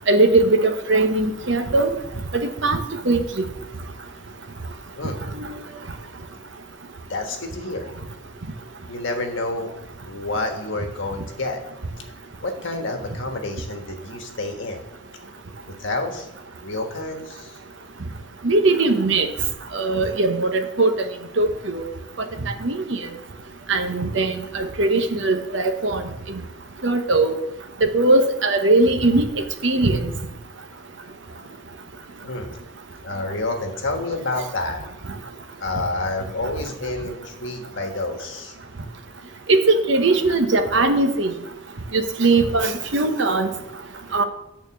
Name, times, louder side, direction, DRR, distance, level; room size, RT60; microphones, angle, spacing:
voice 1, 0.1-2.0 2.6-3.4 5.4-5.5 18.4-19.3 19.7-20.9 21.4-21.9 22.6-23.0 23.7-26.0 26.8-27.3 27.9-29.3 29.6-30.0 39.5-41.3 41.9-43.5 44.1-44.2, right 2 dB, 60° right, 6 dB, 1.0 m, -19 dB
voice 2, 7.1-7.9 8.9-9.7 10.0-11.6 12.4-14.8 15.2-15.3 15.8-16.3 16.6-17.6 32.2-32.6 33.0-34.8 35.6-38.5, left 2 dB, 65° left, 4 dB, 1.4 m, -29 dB
9.2 x 4.3 x 7.1 m, 0.85 s
head